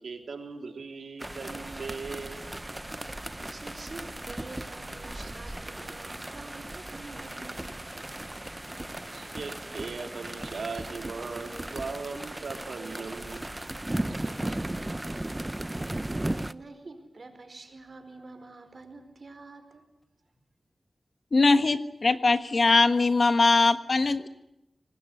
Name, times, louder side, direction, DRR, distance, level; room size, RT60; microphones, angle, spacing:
voice 1, 0.0-2.5 5.2-5.3 9.1-13.5 14.1-14.6, right 4 dB, 85° right, 5 dB, 3.1 m, -39 dB
sound 1, 1.2-16.5, right 1 dB, 20° right, 0.9 m, -36 dB
voice 2, 3.3-7.8 16.2-19.8, right 3 dB, 60° right, 8 dB, 4.6 m, -47 dB
voice 3, 21.3-24.3, left 3 dB, 55° left, 11 dB, 1.4 m, -21 dB
25.0 x 19.5 x 9.7 m, 0.88 s
wide cardioid pair, 60°, 0 cm